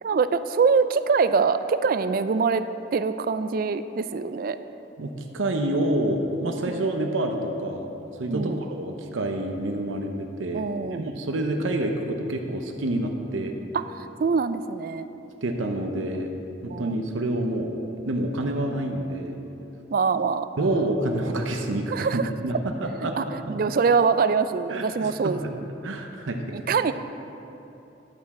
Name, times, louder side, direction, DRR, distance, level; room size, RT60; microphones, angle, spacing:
voice 1, 0.0-2.7 2.9-4.6 8.3-8.6 10.5-11.0 13.7-15.1 16.7-17.0 19.9-20.5 21.9-22.3 23.0-25.7 26.5-26.9, right 5 dB, 45° right, 12 dB, 0.3 m, -24 dB
voice 2, 5.0-7.9 8.2-13.6 15.4-16.3 16.6-17.8 18.1-19.4 20.6-23.6 24.7-25.5 25.8-26.6, right 1 dB, 90° right, 3 dB, 0.7 m, -28 dB
11.0 x 8.3 x 4.2 m, 3.0 s
head